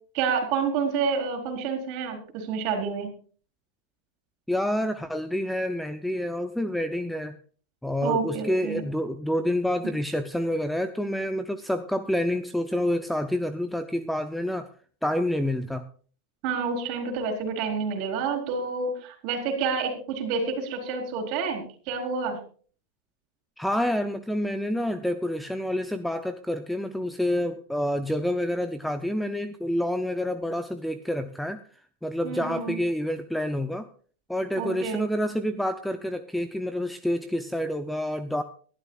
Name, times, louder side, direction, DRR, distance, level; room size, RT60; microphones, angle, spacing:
voice 1, 0.1-3.1 8.0-8.8 16.4-22.4 32.2-32.8 34.6-35.1, right 5 dB, 40° right, 4 dB, 4.5 m, -29 dB
voice 2, 4.5-7.4 7.8-14.7 15.0-15.9 23.6-31.6 32.0-33.9 34.3-38.4, left 1 dB, ahead, 10 dB, 0.6 m, -28 dB
23.0 x 12.5 x 2.4 m, 0.42 s
supercardioid pair, 160°, 0 cm